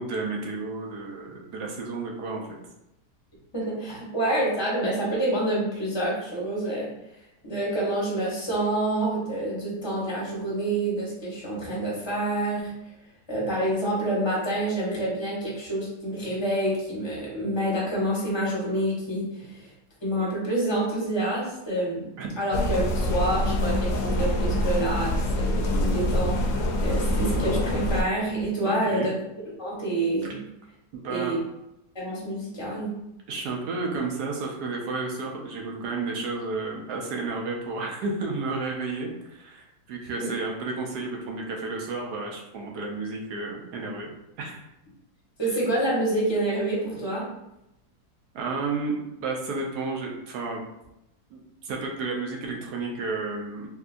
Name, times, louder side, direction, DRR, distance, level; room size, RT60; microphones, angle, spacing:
voice 1, 0.0-2.4 22.2-22.3 28.6-29.1 30.9-31.3 33.3-44.1 44.4-44.6 48.3-50.6 51.3-53.8, right 3 dB, 80° right, 0 dB, 1.3 m, -32 dB
voice 2, 3.5-6.9 7.4-12.7 13.3-19.7 20.0-22.1 22.4-29.2 29.6-30.4 31.1-31.4 31.9-32.9 40.2-40.3 45.4-47.2, right 1 dB, 20° left, -5 dB, 1.0 m, -27 dB
sound 1, 22.5-28.0, left 1 dB, 65° left, 0.8 m, -25 dB
3.5 x 2.7 x 2.5 m, 0.86 s
omnidirectional pair, 1.7 m